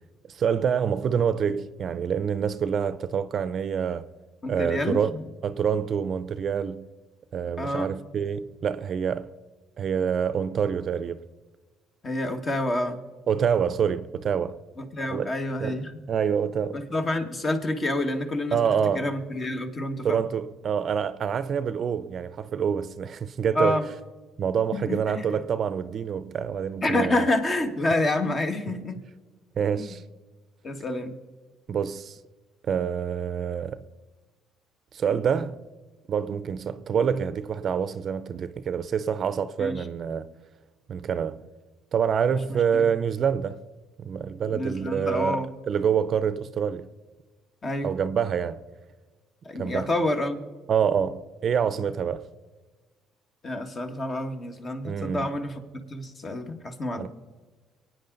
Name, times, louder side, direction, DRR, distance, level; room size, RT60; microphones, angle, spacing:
voice 1, 0.3-4.1 4.5-5.1 5.4-6.9 7.3-9.3 9.8-11.2 13.3-14.6 15.1-15.3 15.6-15.8 16.1-16.8 18.5-19.1 20.0-23.8 24.4-27.2 29.6-30.0 31.7-32.2 32.6-33.8 34.9-35.6 36.1-40.3 40.9-41.4 41.9-43.6 44.0-46.9 47.8-48.6 49.6-49.9 50.7-52.3 54.8-55.3 57.0-57.1, right 7 dB, 50° right, 0.6 m, -26 dB
voice 2, 4.4-5.2 7.6-7.9 12.0-13.0 14.8-16.0 16.7-18.7 18.9-20.2 23.5-23.8 24.7-25.3 26.8-29.0 29.8-30.0 30.6-31.2 39.6-39.8 42.5-42.9 44.5-45.5 47.6-47.9 49.4-50.4 53.4-57.1, left 1 dB, 35° left, 1.8 m, -28 dB
24.0 x 9.4 x 4.0 m
cardioid pair, 90°, 0 cm